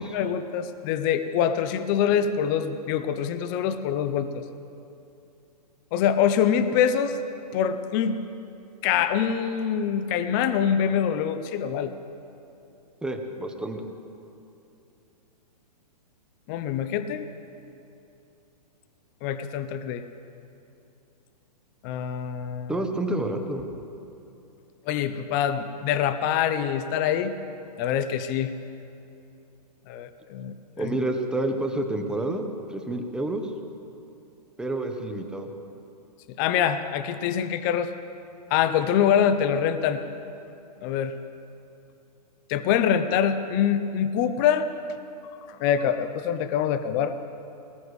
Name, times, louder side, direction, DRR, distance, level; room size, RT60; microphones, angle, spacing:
voice 1, 0.1-4.3 5.9-7.2 7.5-8.2 8.8-11.9 16.5-17.3 19.2-20.0 21.8-22.7 24.9-27.3 27.8-28.5 29.9-30.9 36.4-37.9 38.5-40.0 40.8-41.2 42.5-44.7 45.5-47.1, left 8 dB, 30° left, 11 dB, 0.6 m, -24 dB
voice 2, 13.0-13.9 22.7-23.7 30.8-33.5 34.6-35.5, right 1 dB, 5° right, 4 dB, 0.9 m, -29 dB
20.5 x 19.5 x 3.2 m, 2.7 s
hypercardioid pair, 145°, 21 cm